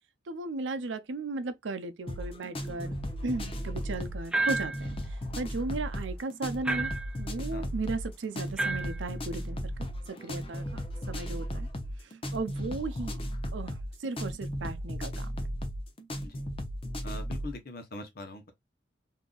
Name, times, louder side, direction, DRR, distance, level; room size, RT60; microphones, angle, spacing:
voice 1, 0.3-2.9 3.2-5.0 5.4-6.9 7.2-9.7 10.1-11.7 12.3-13.2 13.5-15.3, right 3 dB, 80° right, 0.5 m, -36 dB
sound 1, 2.1-17.5, equal, 30° left, 0.7 m, -36 dB
sound 2, 4.3-4.9 6.6-7.2 8.6-9.0, right 2 dB, 5° right, 0.3 m, -30 dB
voice 2, 17.0-18.5, left 2 dB, 55° left, 0.9 m, -42 dB
3.8 x 2.7 x 2.4 m
head